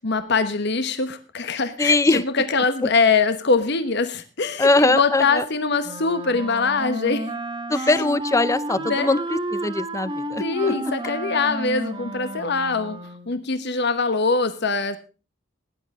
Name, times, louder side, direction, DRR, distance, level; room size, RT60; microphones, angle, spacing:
voice 1, 0.0-7.3 7.7-7.9 8.8-9.1 10.4-13.0 13.3-15.0, left 4 dB, 60° left, 11 dB, 1.1 m, -23 dB
voice 2, 1.8-2.2 4.6-5.4 7.7-10.7, left 2 dB, 15° left, 16 dB, 0.6 m, -21 dB
Wind instrument woodwind instrument, 5.8-13.4, right 1 dB, 25° right, 1.4 m, -31 dB
16.5 x 10.5 x 3.6 m, 0.33 s
head